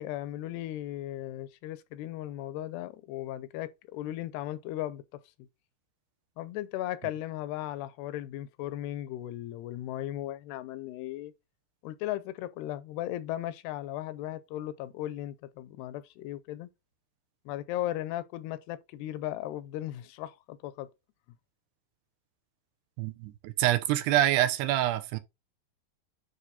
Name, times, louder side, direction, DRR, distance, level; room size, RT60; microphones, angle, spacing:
voice 1, 0.0-5.2 6.4-11.3 11.8-16.7 17.5-20.9, left 14 dB, 85° left, 2.7 m, -36 dB
voice 2, 23.0-25.2, right 13 dB, 90° right, 3.0 m, -26 dB
9.3 x 3.1 x 4.1 m
omnidirectional pair, 4.6 m